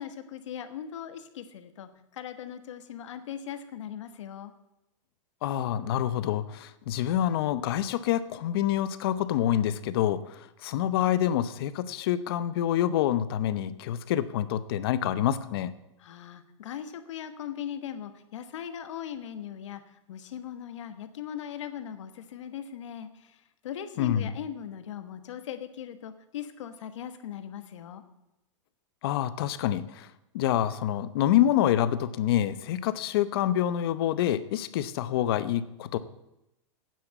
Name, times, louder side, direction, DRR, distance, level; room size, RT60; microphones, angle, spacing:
voice 1, 0.0-4.5 16.0-19.8 20.1-23.4 23.6-28.0, left 9 dB, 70° left, 9 dB, 1.3 m, -39 dB
voice 2, 5.4-15.7 24.0-24.3 29.0-30.1 30.3-36.0, left 11 dB, 50° left, 14 dB, 0.8 m, -27 dB
9.5 x 7.9 x 8.0 m, 0.89 s
supercardioid pair, 160°, 16 cm